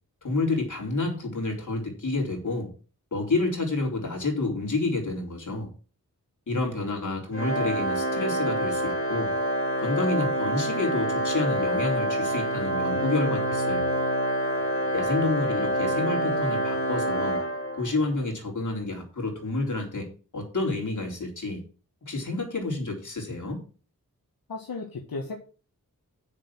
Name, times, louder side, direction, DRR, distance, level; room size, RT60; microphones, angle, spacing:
voice 1, 0.2-2.7 3.1-5.7 6.5-9.3 9.8-14.0 14.9-17.4 17.8-20.1 20.3-21.6 22.0-23.6, left 2 dB, 55° left, 1 dB, 4.1 m, -29 dB
Organ, 7.3-18.1, equal, 35° left, 3.0 m, -27 dB
voice 2, 24.5-25.4, left 3 dB, 75° left, 1 dB, 1.8 m, -36 dB
7.2 x 6.9 x 7.6 m, 0.37 s
cardioid pair, 55°, 35 cm